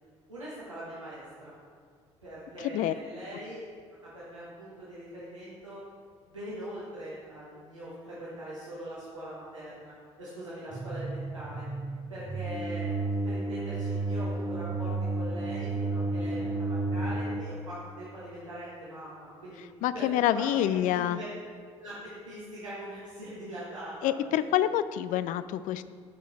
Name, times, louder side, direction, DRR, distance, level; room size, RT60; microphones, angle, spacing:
voice 1, 0.3-1.5 2.2-3.6 4.0-5.8 6.3-11.7 12.1-12.9 13.2-19.6 19.9-20.1 20.3-21.3 21.8-24.6, right 1 dB, 90° right, -9 dB, 1.4 m, -42 dB
voice 2, 2.6-2.9 19.8-21.2 24.0-25.8, left 12 dB, 55° left, 14 dB, 0.4 m, -27 dB
sound 1, 10.7-17.4, right 2 dB, 20° right, 1.0 m, -32 dB
11.5 x 5.6 x 4.2 m, 2.1 s
figure-of-eight pair, 50°, 16 cm